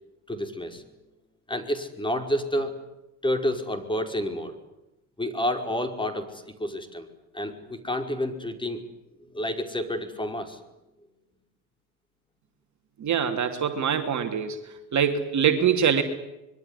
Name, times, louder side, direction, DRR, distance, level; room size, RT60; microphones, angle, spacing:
voice 1, 0.3-0.8 1.5-2.8 3.2-4.5 5.2-7.1 7.3-8.8 9.2-10.6, left 1 dB, 10° left, 7 dB, 5.2 m, -29 dB
voice 2, 13.0-14.6 14.9-16.0, right 7 dB, 40° right, 6 dB, 2.8 m, -23 dB
25.5 x 22.5 x 9.9 m, 0.93 s
hypercardioid pair, 80°, 45 cm